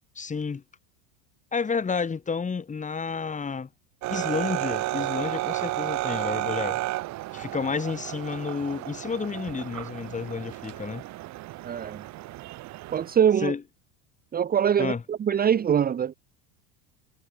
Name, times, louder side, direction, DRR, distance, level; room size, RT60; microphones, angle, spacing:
voice 1, 0.2-0.6 1.5-3.7 4.1-6.8 7.3-11.0 13.4-13.6 14.8-15.0, left 5 dB, 15° left, 5.9 m, -30 dB
sound 1, 4.0-13.2, right 17 dB, 40° right, 1.4 m, -32 dB
voice 2, 11.6-12.0 12.9-13.5 14.3-16.1, right 8 dB, 20° right, 1.2 m, -23 dB
supercardioid pair, 130°, 42 cm